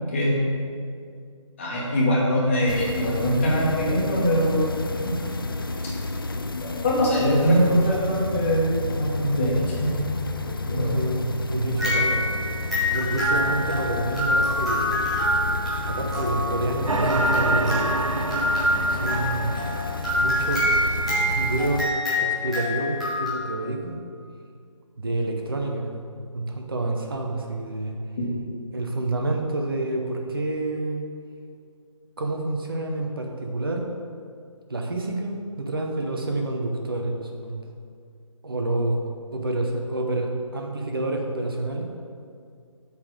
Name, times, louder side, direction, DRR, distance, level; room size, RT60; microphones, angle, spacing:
voice 1, 1.6-4.8 6.8-9.9 10.7-11.0 28.2-28.3, equal, 25° left, -6 dB, 1.5 m, -22 dB
sound 1, 2.7-21.8, left 3 dB, 45° left, 0.4 m, -31 dB
voice 2, 10.6-12.2 12.9-15.0 15.9-18.1 18.9-19.5 20.2-20.7 21.3-21.9 22.2-24.0 25.0-25.9 26.3-28.0 28.7-31.0 32.2-33.9 34.7-37.6 38.4-39.0 39.3-41.9, right 2 dB, 45° right, 2 dB, 1.0 m, -28 dB
sound 2, 11.8-23.3, equal, ahead, 0.6 m, -26 dB
sound 3, 16.9-21.3, right 2 dB, 75° right, 0.7 m, -30 dB
8.5 x 4.0 x 6.3 m, 2.2 s
figure-of-eight pair, 155°, 17 cm